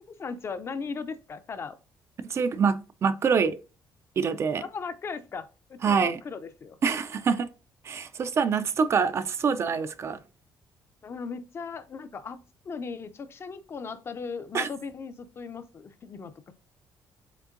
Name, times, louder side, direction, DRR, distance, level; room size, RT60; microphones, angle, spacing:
voice 1, 0.2-1.8 4.6-6.8 11.0-16.5, left 5 dB, 35° left, 0.5 m, -37 dB
voice 2, 2.3-3.6 4.2-4.7 5.8-6.2 6.8-7.5 7.8-10.2 14.5-14.7, right 5 dB, 40° right, 0.3 m, -25 dB
5.1 x 3.6 x 2.5 m
cardioid pair, 125°, 7 cm